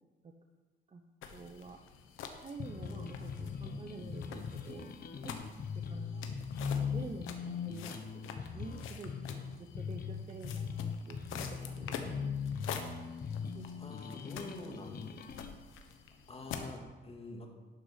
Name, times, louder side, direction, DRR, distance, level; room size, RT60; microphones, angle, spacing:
sound 1, 1.2-16.8, left 7 dB, 90° left, 1.1 m, -47 dB
voice 1, 1.3-1.8 2.4-5.4 5.7-6.3 6.8-9.1 9.6-12.3 13.5-13.7 14.3-14.9, right 4 dB, 30° right, 3 dB, 0.9 m, -48 dB
sound 2, 2.6-15.5, left 6 dB, 50° left, 0.9 m, -40 dB
voice 2, 13.8-15.1 16.3-17.5, left 3 dB, 30° left, 2 dB, 2.2 m, -46 dB
11.5 x 6.2 x 5.8 m, 1.3 s
cardioid pair, 90°, 20 cm